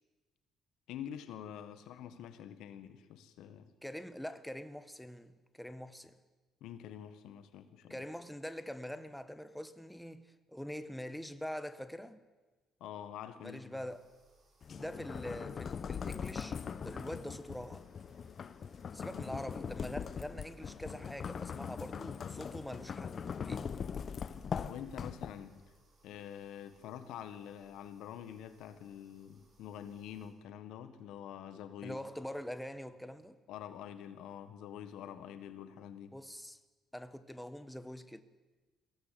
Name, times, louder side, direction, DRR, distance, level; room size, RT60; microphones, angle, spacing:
voice 1, 0.9-3.7 6.6-8.0 12.8-13.8 19.1-19.3 22.0-22.3 24.6-25.6 26.0-32.0 33.5-36.1, left 9 dB, 80° left, 1.6 m, -46 dB
voice 2, 3.8-6.2 7.9-12.2 13.4-14.1 14.8-17.9 18.9-23.7 31.8-33.4 36.1-36.6 36.9-38.2, equal, 5° left, 1.3 m, -44 dB
sound 1, 13.9-30.3, right 3 dB, 50° right, 7.9 m, -70 dB
sound 2, 14.6-25.6, left 6 dB, 45° left, 0.9 m, -41 dB
22.5 x 16.5 x 7.7 m
cardioid pair, 85°, 0 cm